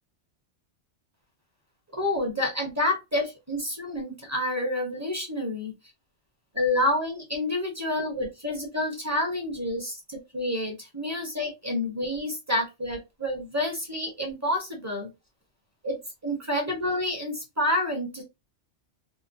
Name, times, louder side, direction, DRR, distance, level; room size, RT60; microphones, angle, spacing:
voice 1, 1.9-5.7 6.5-15.1 15.8-16.0 16.2-18.2, left 1 dB, 15° right, 0 dB, 0.6 m, -28 dB
3.0 x 2.0 x 2.5 m, 0.23 s
omnidirectional pair, 1.2 m